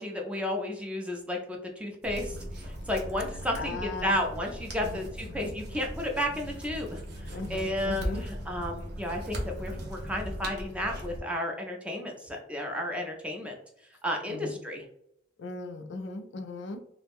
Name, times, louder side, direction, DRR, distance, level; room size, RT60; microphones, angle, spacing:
voice 1, 0.0-13.6 14.0-14.8, left 1 dB, 5° right, 1 dB, 0.3 m, -33 dB
sound 1, 2.0-11.2, equal, 55° right, 0.6 m, -38 dB
voice 2, 3.6-4.1 4.8-5.5 7.3-8.2 14.3-14.6 15.4-16.8, left 3 dB, 70° left, 7 dB, 0.3 m, -38 dB
2.4 x 2.1 x 3.3 m, 0.74 s
head